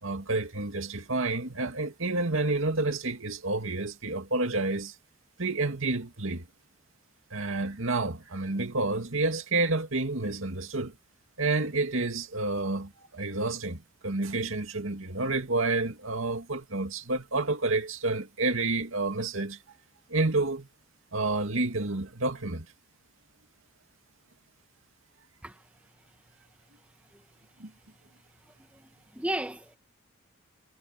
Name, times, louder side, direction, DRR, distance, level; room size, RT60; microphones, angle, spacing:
voice 1, 0.0-4.9 5.4-6.5 7.3-10.9 11.4-19.6 20.1-20.7 21.1-22.7 27.6-27.7, right 2 dB, 80° right, 2.4 m, -29 dB
voice 2, 28.7-29.8, right 1 dB, 5° right, 1.1 m, -34 dB
head